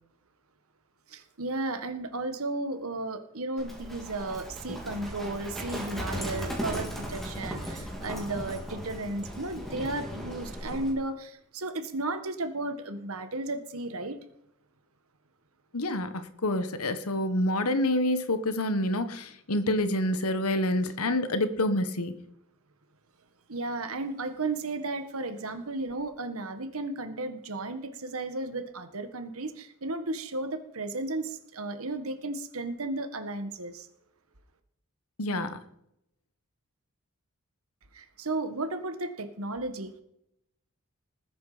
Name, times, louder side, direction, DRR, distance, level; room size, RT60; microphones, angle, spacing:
voice 1, 1.1-14.2 23.5-33.9 37.9-40.0, right 2 dB, 75° right, 8 dB, 1.7 m, -34 dB
Livestock farm animals working animals, 3.6-10.9, equal, ahead, 3.9 m, -37 dB
voice 2, 15.7-22.2 35.2-35.6, left 1 dB, 85° left, 11 dB, 1.4 m, -27 dB
20.0 x 9.4 x 5.1 m, 0.80 s
head